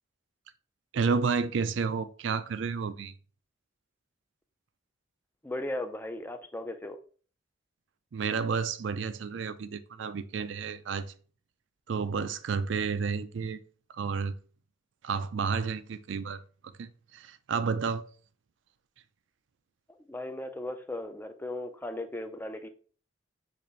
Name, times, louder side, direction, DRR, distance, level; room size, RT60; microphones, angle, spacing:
voice 1, 0.9-3.1 8.1-11.1 11.9-13.6 13.9-14.3 15.0-16.4 16.8-18.0, right 5 dB, 70° right, 0.4 m, -31 dB
voice 2, 5.4-7.0 20.1-22.7, left 1 dB, 10° left, 0.4 m, -37 dB
6.8 x 2.5 x 3.1 m
head